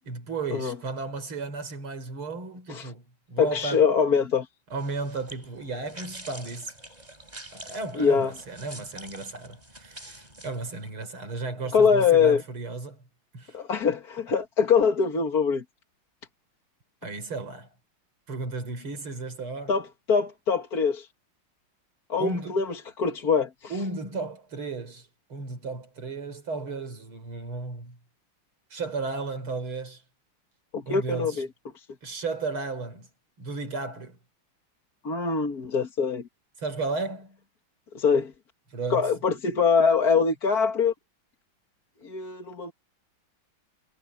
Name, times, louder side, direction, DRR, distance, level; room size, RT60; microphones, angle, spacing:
voice 1, 0.0-3.9 4.7-6.7 7.5-13.0 13.3-13.6 17.0-17.7 18.3-19.7 22.2-22.6 23.7-28.0 28.7-30.0 30.9-31.4 32.0-33.1 33.4-34.2 36.6-37.4 38.7-39.1, right 3 dB, 80° right, 5.5 m, -34 dB
voice 2, 3.4-4.5 8.0-8.3 11.7-12.4 13.5-15.6 19.7-21.1 22.1-23.7 30.7-31.5 31.7-31.8 35.0-36.2 37.9-38.3 38.9-40.9 42.0-42.7, left 6 dB, 45° left, 2.2 m, -23 dB
sound 1, 4.7-10.9, right 1 dB, 20° right, 7.4 m, -46 dB
omnidirectional pair, 2.3 m